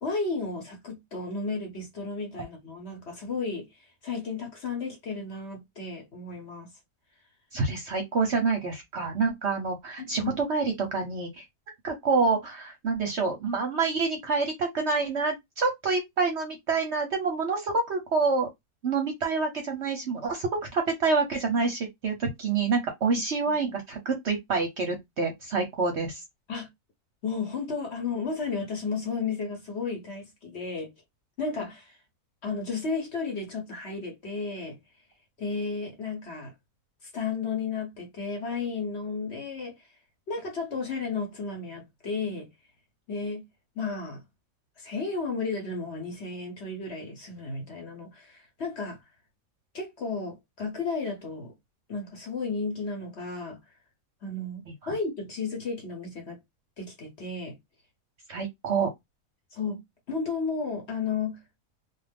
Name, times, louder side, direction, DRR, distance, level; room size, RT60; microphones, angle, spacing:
voice 1, 0.0-3.7 4.0-6.7 10.0-10.4 23.1-23.2 26.5-26.7 27.2-30.9 31.4-32.0 32.4-34.8 35.4-36.5 37.1-39.8 40.3-42.5 43.1-43.4 43.8-44.2 44.8-49.0 49.7-51.5 51.9-53.6 54.2-56.4 56.8-57.6 59.5-59.8 60.1-61.4, left 4 dB, 50° left, 1.0 m, -33 dB
voice 2, 7.5-11.4 11.8-18.5 18.8-26.2 54.8-54.9 58.3-58.9, right 4 dB, 55° right, 0.8 m, -27 dB
2.4 x 2.4 x 3.4 m
omnidirectional pair, 1.6 m